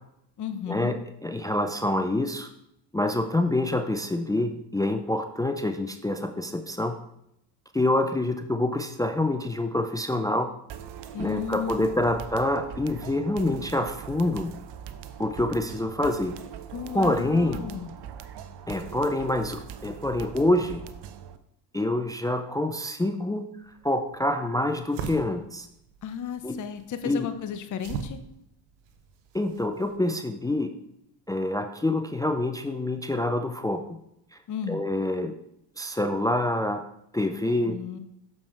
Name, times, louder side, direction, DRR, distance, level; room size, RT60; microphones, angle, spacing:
voice 1, 0.4-1.0 11.1-12.1 16.7-17.9 26.0-28.2 34.5-34.8 37.6-38.0, left 8 dB, 40° left, 10 dB, 0.8 m, -34 dB
voice 2, 1.2-2.5 2.9-6.9 7.7-10.5 11.2-14.5 15.2-16.3 16.9-17.6 18.7-20.8 21.7-23.4 23.8-25.7 26.4-26.5 27.0-27.3 29.3-30.7 31.3-33.8 34.7-35.3 35.8-36.8 37.1-37.8, left 1 dB, 10° left, 7 dB, 0.4 m, -26 dB
sound 1, 10.7-21.4, right 9 dB, 55° right, 0.8 m, -41 dB
sound 2, 23.6-30.0, right 6 dB, 80° right, 1.1 m, -41 dB
7.0 x 5.4 x 4.5 m, 0.80 s
supercardioid pair, 70°, 49 cm